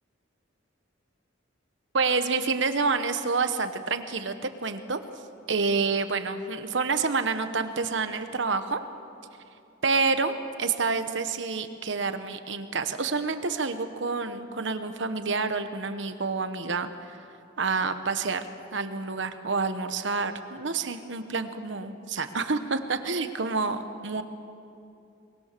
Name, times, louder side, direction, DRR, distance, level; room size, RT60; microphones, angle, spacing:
voice 1, 1.9-4.3 4.6-5.0 5.5-8.8 9.8-17.2 17.6-24.2, right 4 dB, 65° right, 9 dB, 1.2 m, -28 dB
24.0 x 21.5 x 6.8 m, 2.7 s
head